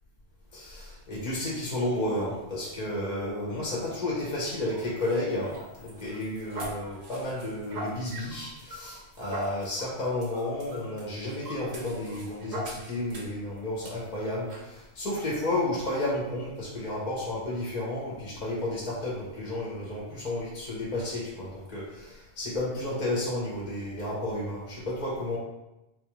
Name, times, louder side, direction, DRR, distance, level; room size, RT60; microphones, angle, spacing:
voice 1, 0.5-25.4, left 1 dB, 40° left, -5 dB, 0.8 m, -32 dB
sound 1, 4.7-13.4 13.8-14.0 14.5-14.7, right 1 dB, 70° right, 0.9 m, -41 dB
3.8 x 2.4 x 3.0 m, 0.97 s
omnidirectional pair, 1.2 m